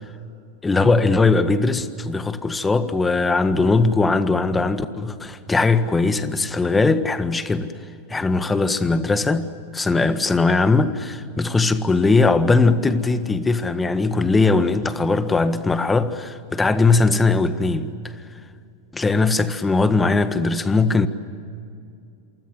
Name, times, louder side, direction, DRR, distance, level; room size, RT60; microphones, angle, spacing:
voice 1, 0.6-7.7 8.1-18.1 18.9-21.1, left 3 dB, 15° left, 1.6 m, -20 dB
28.0 x 25.0 x 8.0 m
hypercardioid pair, 95°, 0 cm